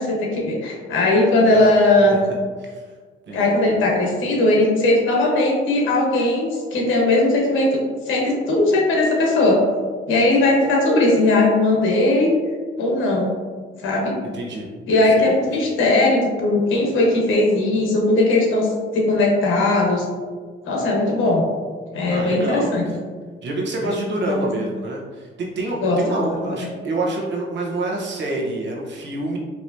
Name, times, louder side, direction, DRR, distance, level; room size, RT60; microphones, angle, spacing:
voice 1, 0.0-2.2 3.3-7.8 8.1-9.6 10.1-12.3 12.8-13.3 13.8-14.1 14.9-20.0 20.6-21.5 21.9-22.8 24.1-24.5 25.8-26.7, left 2 dB, 85° left, -2 dB, 1.2 m, -18 dB
voice 2, 3.3-3.6 14.3-14.7 15.0-15.3 22.1-22.9 23.4-29.4, right 2 dB, 65° right, -3 dB, 1.1 m, -27 dB
4.7 x 2.9 x 2.7 m, 1.5 s
cardioid pair, 90°, 20 cm